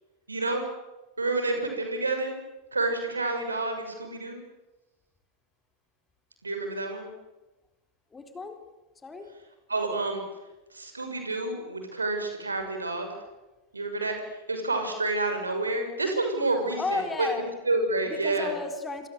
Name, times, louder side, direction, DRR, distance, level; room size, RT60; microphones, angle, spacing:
voice 1, 0.3-0.6 1.2-2.3 2.7-4.4 6.4-7.0 9.7-10.2 10.7-13.1 13.7-14.2 14.5-17.3 17.7-18.5, right 2 dB, 80° right, 5 dB, 6.6 m, -29 dB
voice 2, 8.1-8.6 9.0-9.3 16.8-17.5 18.1-19.1, left 3 dB, 15° left, 6 dB, 4.1 m, -33 dB
27.5 x 26.5 x 8.1 m, 1.1 s
figure-of-eight pair, 90°, 0 cm